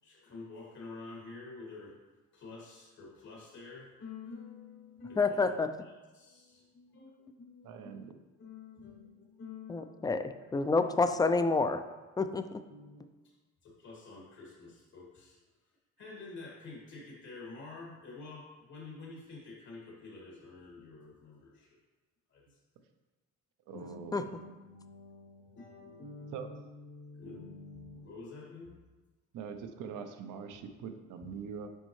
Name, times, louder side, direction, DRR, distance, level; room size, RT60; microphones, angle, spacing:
voice 1, 0.0-1.9 2.3-5.5 5.8-10.4 10.7-11.1 12.6-13.3 13.6-15.4 16.0-21.8 22.3-22.6 23.7-28.8 31.2-31.3, left 3 dB, 70° left, -4 dB, 2.1 m, -49 dB
voice 2, 5.2-5.7 9.7-11.8 12.2-12.6 23.7-23.8 24.1-24.2, left 3 dB, 15° left, 10 dB, 0.4 m, -28 dB
voice 3, 7.6-8.1 23.7-24.2 26.3-26.5 29.3-31.7, right 7 dB, 85° right, 7 dB, 0.7 m, -43 dB
8.0 x 5.3 x 3.2 m, 1.2 s
cardioid pair, 90°, 30 cm